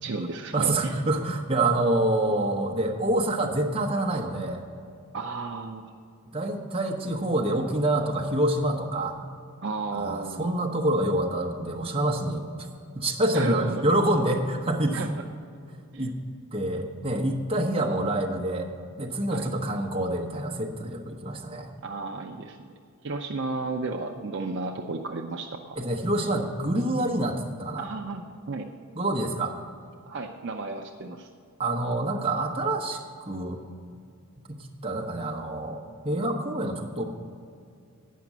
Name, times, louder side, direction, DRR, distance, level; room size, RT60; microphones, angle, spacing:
voice 1, 0.0-0.9 5.1-5.8 9.6-10.5 13.3-13.9 14.9-15.1 15.9-16.1 19.3-19.5 21.8-22.6 23.0-25.8 27.8-28.7 30.0-31.3, right 3 dB, 55° right, 3 dB, 0.5 m, -33 dB
voice 2, 0.5-4.6 6.3-9.2 9.9-12.7 12.9-15.1 16.0-16.2 16.5-18.7 19.0-21.7 25.8-27.9 28.9-29.6 31.6-33.6 34.5-37.0, right 1 dB, 25° right, 0 dB, 1.0 m, -27 dB
9.3 x 5.9 x 7.3 m, 2.4 s
head